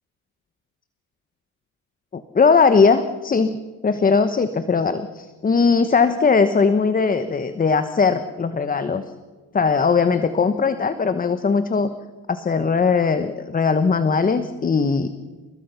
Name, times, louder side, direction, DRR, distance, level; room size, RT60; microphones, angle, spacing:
voice 1, 2.1-3.6 3.8-9.0 9.5-11.9 12.3-15.1, left 5 dB, 20° left, 11 dB, 1.1 m, -19 dB
29.5 x 19.5 x 5.7 m, 1.4 s
cardioid pair, 110°, 37 cm